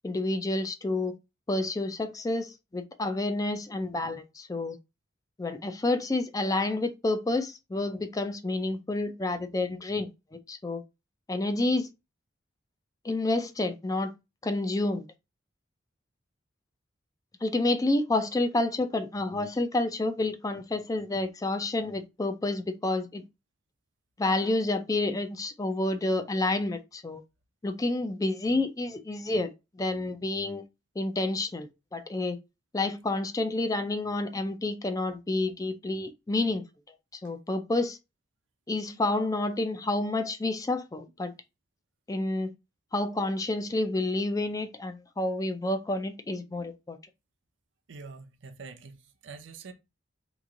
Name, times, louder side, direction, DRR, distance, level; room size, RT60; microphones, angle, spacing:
voice 1, 0.0-1.2 1.5-4.8 5.4-10.1 10.5-10.8 11.3-11.9 13.0-14.1 14.4-15.0 17.4-23.2 24.2-27.2 27.6-30.6 31.0-32.4 32.7-36.6 37.2-38.0 38.7-41.3 42.1-42.5 42.9-47.0, left 2 dB, 20° left, 0.4 m, -29 dB
voice 2, 47.9-49.7, right 4 dB, 70° right, 0.6 m, -45 dB
3.1 x 2.5 x 3.6 m
head